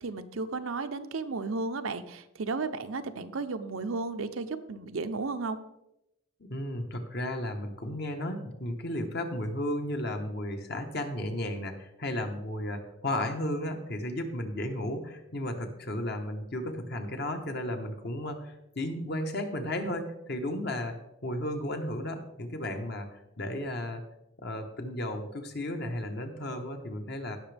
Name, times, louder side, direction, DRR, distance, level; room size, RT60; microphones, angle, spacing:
voice 1, 0.0-5.6, right 3 dB, 80° right, 9 dB, 0.7 m, -34 dB
voice 2, 6.4-21.0 21.2-24.0 24.4-27.4, left 1 dB, 50° left, 5 dB, 1.2 m, -34 dB
17.0 x 6.0 x 3.4 m, 0.88 s
head